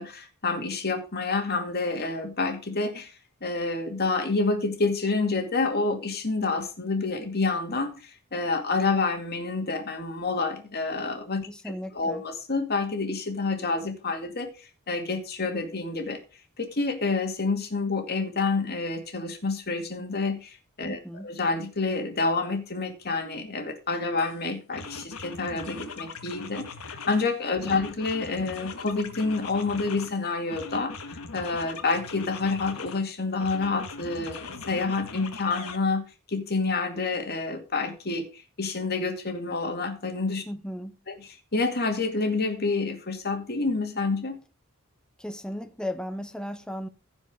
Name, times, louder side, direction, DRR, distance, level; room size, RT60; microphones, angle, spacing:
voice 1, 0.0-3.1 3.4-11.5 11.9-14.5 14.9-16.2 16.6-36.0 36.3-40.4 41.1-44.4, left 3 dB, 45° left, 2.2 m, -28 dB
voice 2, 11.5-12.2 20.8-21.3 27.6-27.8 40.5-41.0 45.2-46.9, equal, 5° left, 0.7 m, -36 dB
sound 1, 24.2-24.3 24.7-27.3 27.6-30.2 30.5-33.0 33.4-35.8, left 4 dB, 70° left, 1.4 m, -40 dB
15.5 x 5.2 x 4.9 m
head